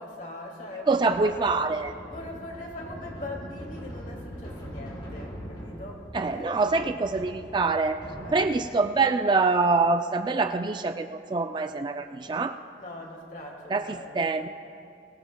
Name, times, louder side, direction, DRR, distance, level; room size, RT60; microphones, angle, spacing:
voice 1, 0.0-1.5 1.9-6.8 8.2-8.4 12.8-14.3, left 1 dB, 45° left, 0 dB, 2.2 m, -41 dB
voice 2, 0.9-1.9 6.1-8.0 8.3-12.6 13.7-14.5, right 3 dB, 25° right, 8 dB, 0.3 m, -25 dB
sound 1, 1.1-8.8, equal, 30° left, 3.3 m, -42 dB
23.0 x 18.0 x 2.2 m, 2.6 s
head